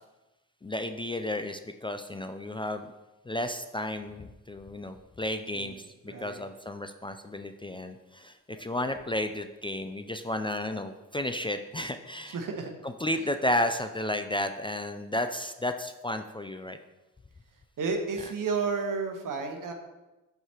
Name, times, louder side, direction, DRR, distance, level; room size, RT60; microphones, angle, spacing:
voice 1, 0.6-2.9 3.3-12.4 12.8-16.8 18.2-18.3, left 1 dB, 15° left, 7 dB, 0.3 m, -33 dB
voice 2, 6.1-6.5 12.3-12.7 17.8-19.7, right 4 dB, 70° right, 4 dB, 1.1 m, -32 dB
8.0 x 4.7 x 2.9 m, 1.1 s
cardioid pair, 70°, 33 cm